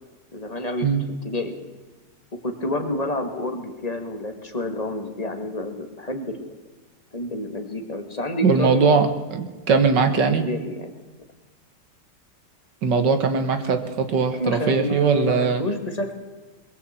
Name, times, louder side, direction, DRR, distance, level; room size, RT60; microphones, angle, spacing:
voice 1, 0.3-0.9 1.2-1.6 2.4-6.4 7.1-9.0 10.4-10.9 14.4-16.1, left 1 dB, 20° left, 6 dB, 1.8 m, -29 dB
voice 2, 8.4-10.5 12.8-15.6, right 5 dB, 75° right, 8 dB, 2.2 m, -20 dB
21.5 x 15.5 x 4.3 m, 1.2 s
omnidirectional pair, 1.9 m